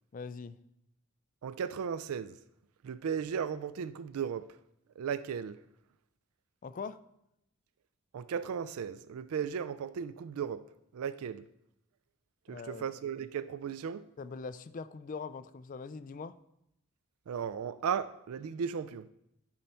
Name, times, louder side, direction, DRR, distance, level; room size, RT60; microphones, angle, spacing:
voice 1, 0.1-0.6 6.6-7.0 12.5-12.8 14.2-16.4, left 5 dB, 35° left, 0.3 m, -42 dB
voice 2, 1.4-2.4 2.8-4.6 5.0-5.6 8.1-10.7 10.9-11.4 12.5-14.0 17.3-19.1, right 7 dB, 85° right, 0.4 m, -36 dB
10.0 x 5.4 x 4.4 m
head